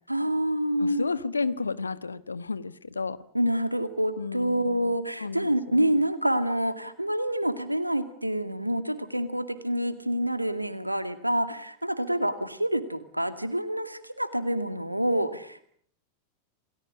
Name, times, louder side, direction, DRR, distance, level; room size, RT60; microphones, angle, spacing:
voice 1, 0.1-1.1 3.3-15.6, right 1 dB, 85° right, 12 dB, 2.3 m, -27 dB
voice 2, 0.8-3.2 4.2-6.0, left 4 dB, 75° left, 16 dB, 1.2 m, -32 dB
28.5 x 19.0 x 8.6 m, 0.63 s
figure-of-eight pair, 90°, 0 cm